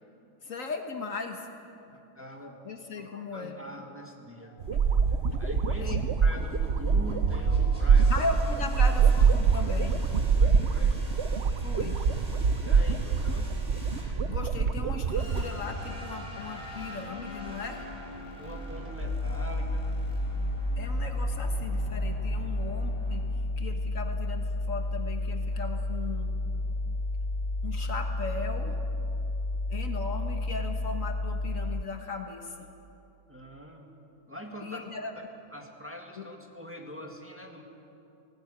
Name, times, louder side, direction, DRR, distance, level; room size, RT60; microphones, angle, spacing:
voice 1, 0.4-1.5 1.9-2.0 2.7-3.6 4.7-4.8 5.8-6.0 8.1-10.0 11.6-12.0 14.3-17.9 20.8-23.3 23.6-26.3 27.6-28.7 29.7-32.7 34.6-35.1 36.2-36.3, left 4 dB, 65° left, 5 dB, 1.7 m, -37 dB
voice 2, 2.1-2.6 3.0-4.5 5.4-8.3 10.3-11.0 12.6-13.5 18.4-19.9 33.3-33.9 34.3-34.9 35.5-37.6, equal, 10° right, 1 dB, 2.1 m, -43 dB
sound 1, 4.4-23.3, right 2 dB, 30° right, 4.1 m, -41 dB
sound 2, 4.6-15.4, right 5 dB, 55° right, 1.0 m, -24 dB
sound 3, 19.0-31.8, left 2 dB, 50° left, 0.4 m, -31 dB
18.5 x 18.0 x 8.8 m, 2.7 s
omnidirectional pair, 1.5 m